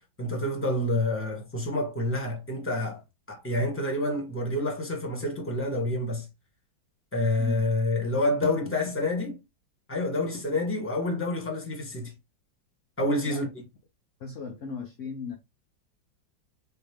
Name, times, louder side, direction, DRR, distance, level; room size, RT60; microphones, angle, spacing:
voice 1, 0.2-3.0 3.3-6.3 7.1-9.4 9.9-12.1 13.0-13.5, left 1 dB, 10° left, 1.2 m, -28 dB
voice 2, 14.2-15.4, left 5 dB, 65° left, 0.7 m, -37 dB
4.2 x 3.3 x 3.5 m
omnidirectional pair, 2.2 m